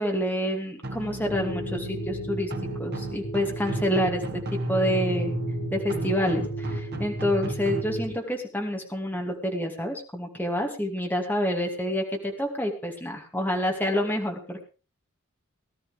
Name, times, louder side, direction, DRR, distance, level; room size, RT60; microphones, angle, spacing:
voice 1, 0.0-2.5 2.8-5.3 5.7-14.6, equal, 10° left, 1 dB, 2.5 m, -28 dB
sound 1, 0.8-7.8, right 1 dB, 50° right, 1.9 m, -33 dB
sound 2, 1.3-8.1, right 1 dB, 85° left, 7.4 m, -35 dB
19.0 x 12.5 x 3.5 m, 0.34 s
head